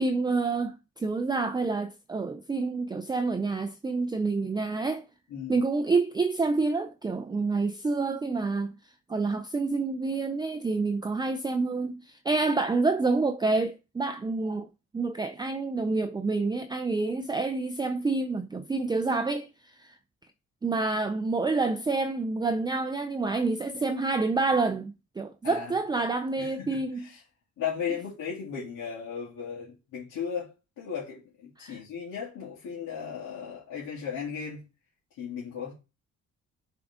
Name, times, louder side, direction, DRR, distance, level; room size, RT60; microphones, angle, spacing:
voice 1, 0.0-5.0 5.5-8.7 9.1-14.7 14.9-20.0 20.6-27.1 31.6-31.8, right 3 dB, 15° right, 0.4 m, -28 dB
voice 2, 26.4-27.2 27.6-34.6 35.2-35.7, left 7 dB, 85° left, 2.4 m, -36 dB
7.0 x 3.8 x 3.6 m
cardioid pair, 90°, 30 cm